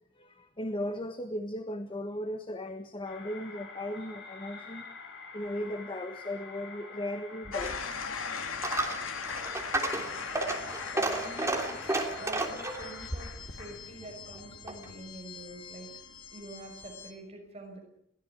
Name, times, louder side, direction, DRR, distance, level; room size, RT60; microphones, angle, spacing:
voice 1, 0.2-4.9 5.3-7.9, left 1 dB, 25° left, 8 dB, 1.4 m, -37 dB
sound 1, 3.0-13.1, left 4 dB, 60° left, 7.8 m, -47 dB
Coin (dropping), 7.4-14.9, right 2 dB, 15° right, 3.2 m, -34 dB
sound 2, 7.5-17.1, left 5 dB, 85° left, 2.5 m, -40 dB
voice 2, 10.9-15.9 16.3-17.8, right 1 dB, 35° right, 2 dB, 5.7 m, -45 dB
22.5 x 17.0 x 9.3 m, 0.73 s
head